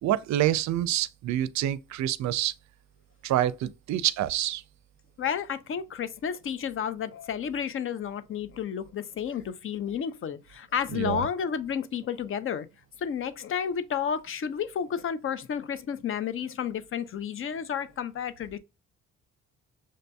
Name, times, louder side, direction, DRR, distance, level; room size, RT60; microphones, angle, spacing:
voice 1, 0.0-2.5 3.2-4.6 10.9-11.3, right 12 dB, 65° right, 0.5 m, -27 dB
voice 2, 5.2-12.7 13.0-18.6, left 8 dB, 45° left, 0.5 m, -31 dB
6.4 x 2.6 x 2.2 m
cardioid pair, 90°, 30 cm